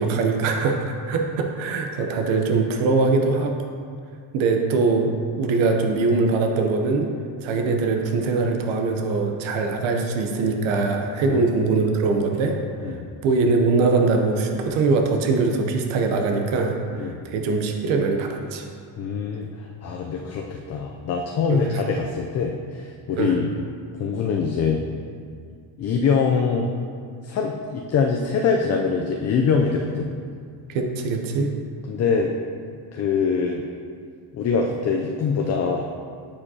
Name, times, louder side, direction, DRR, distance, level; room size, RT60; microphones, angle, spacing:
voice 1, 0.0-3.5 4.3-7.1 7.4-12.6 13.2-18.6 21.5-21.7 23.2-23.4 30.7-31.5, right 3 dB, 85° right, 3 dB, 0.8 m, -22 dB
voice 2, 19.0-23.5 24.0-24.8 25.8-26.7 27.2-30.1 31.9-32.3 32.9-33.6 34.3-35.9, left 5 dB, 35° left, 1 dB, 0.4 m, -24 dB
8.5 x 5.0 x 2.8 m, 2.2 s
cardioid pair, 120°, 44 cm